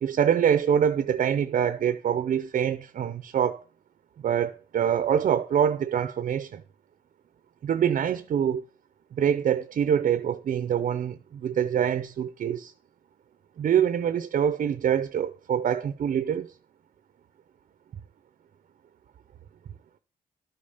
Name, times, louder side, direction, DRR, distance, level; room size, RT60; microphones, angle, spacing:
voice 1, 0.0-3.6 4.2-6.6 7.6-8.6 9.1-12.7 13.6-16.5, right 8 dB, 60° right, 0.6 m, -25 dB
12.0 x 5.0 x 5.6 m
cardioid pair, 115°, 16 cm